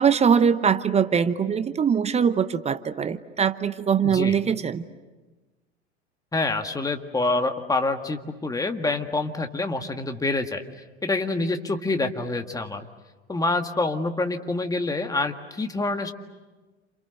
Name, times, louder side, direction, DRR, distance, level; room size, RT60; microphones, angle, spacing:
voice 1, 0.0-4.9, right 7 dB, 20° right, 13 dB, 0.9 m, -22 dB
voice 2, 4.0-4.4 6.3-10.6 11.0-12.9 13.3-16.1, left 2 dB, 10° left, 6 dB, 1.9 m, -26 dB
29.0 x 28.0 x 6.6 m, 1.2 s
figure-of-eight pair, 80°, 33 cm